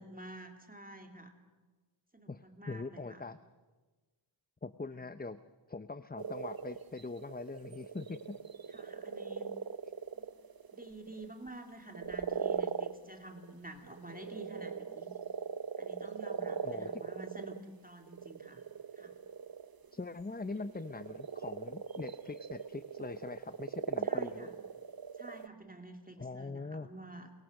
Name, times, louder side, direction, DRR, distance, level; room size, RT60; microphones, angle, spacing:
voice 1, 0.0-1.3 2.1-3.2 4.9-5.0 8.7-9.5 10.1-10.3 10.7-15.1 15.8-18.6 18.9-19.1 24.0-24.5 25.1-27.3, right 1 dB, 15° right, 4 dB, 2.5 m, -49 dB
voice 2, 2.3-3.4 4.6-5.4 5.7-8.4 16.6-17.0 19.9-24.5 26.2-26.9, left 3 dB, 20° left, 12 dB, 0.7 m, -42 dB
sound 1, 6.2-11.3 11.9-13.5 13.9-17.6 18.0-20.1 20.5-25.5, right 6 dB, 50° right, 0.8 m, -40 dB
29.0 x 23.0 x 6.5 m, 1.3 s
wide cardioid pair, 60°, 48 cm